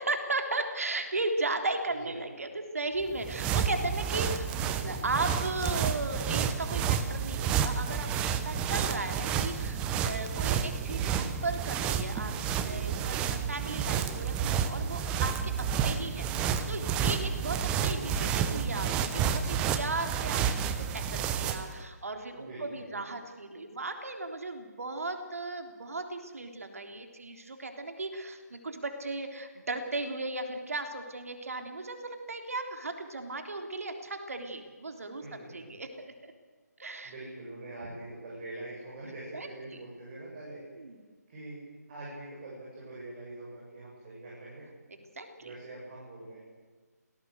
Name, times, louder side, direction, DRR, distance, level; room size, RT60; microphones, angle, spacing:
voice 1, 0.0-8.1 8.5-36.3 36.8-37.1 39.3-39.5 40.8-41.0 45.2-45.5, right 2 dB, 55° right, 5 dB, 3.6 m, -36 dB
sound 1, 3.0-21.8, right 7 dB, 10° right, 0.9 m, -30 dB
voice 2, 12.5-13.3 15.6-15.9 22.4-23.0 35.2-35.8 37.0-40.6 41.3-41.6 41.9-44.6 45.4-46.4, right 2 dB, 30° right, -5 dB, 7.6 m, -44 dB
27.0 x 18.5 x 8.2 m, 1.4 s
figure-of-eight pair, 150°, 9 cm